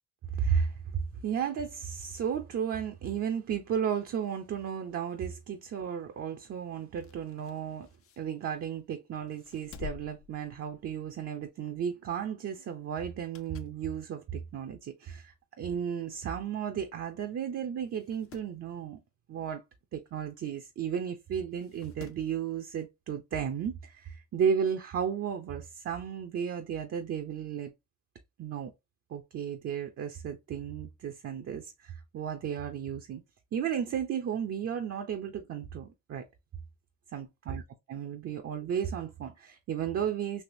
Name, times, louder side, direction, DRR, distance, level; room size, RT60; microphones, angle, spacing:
voice 1, 0.3-0.7 1.2-7.9 8.2-19.0 19.3-19.6 19.9-27.7 28.4-28.7 29.1-33.2 33.5-36.2 37.1-37.6 37.9-40.4, right 8 dB, 50° right, 0.6 m, -34 dB
sound 1, 6.8-8.8 9.3-11.2 11.5-11.7 13.0-13.8 14.3-14.4 15.3-15.4 15.6-15.7 15.9-16.0 16.9-17.1 17.4-17.5 17.9-18.5 20.4-20.5 21.5-22.3 23.6-23.7, left 6 dB, 50° left, 0.5 m, -50 dB
3.4 x 2.8 x 2.6 m
cardioid pair, 90°, 30 cm